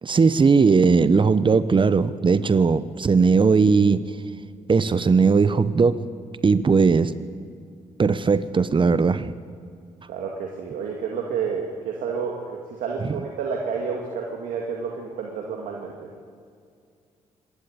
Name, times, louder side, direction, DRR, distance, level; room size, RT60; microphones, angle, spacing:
voice 1, 0.0-4.0 4.7-6.0 6.4-7.1 8.0-9.3, right 5 dB, 35° right, 0.9 m, -18 dB
voice 2, 10.1-16.1, right 5 dB, 85° right, 2.2 m, -30 dB
25.5 x 12.0 x 8.8 m
supercardioid pair, 60°, 14 cm